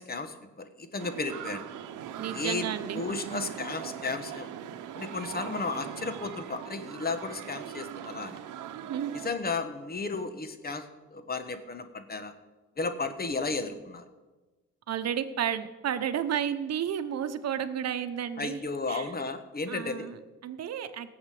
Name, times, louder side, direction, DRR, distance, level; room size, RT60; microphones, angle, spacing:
voice 1, 0.0-1.7 2.3-2.7 2.9-4.5 4.9-8.4 9.2-10.9 11.1-12.3 12.8-14.1 18.4-20.1, left 3 dB, 30° left, 9 dB, 1.2 m, -34 dB
sound 1, 1.0-9.3, right 10 dB, 85° right, 0.9 m, -41 dB
voice 2, 2.2-3.5 8.9-9.1 14.9-19.1 19.7-21.1, right 9 dB, 55° right, 11 dB, 1.0 m, -32 dB
17.5 x 7.3 x 4.9 m, 1.2 s
cardioid pair, 90°, 30 cm